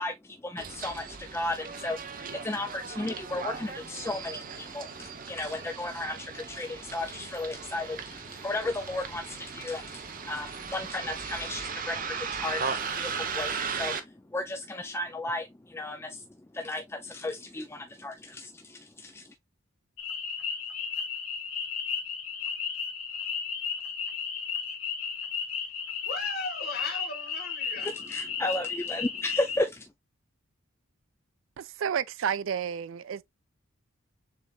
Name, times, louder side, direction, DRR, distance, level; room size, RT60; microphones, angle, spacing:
voice 1, 0.0-16.2 16.5-19.2 27.8-29.8, left 2 dB, 10° left, 0.4 m, -34 dB
Bus, 0.6-14.0, right 5 dB, 40° right, 0.7 m, -37 dB
sound 1, 20.0-29.6, left 6 dB, 90° left, 1.2 m, -34 dB
voice 2, 26.0-28.1, left 3 dB, 50° left, 1.5 m, -37 dB
voice 3, 31.6-33.2, right 8 dB, 65° right, 0.4 m, -31 dB
6.9 x 3.3 x 2.3 m
head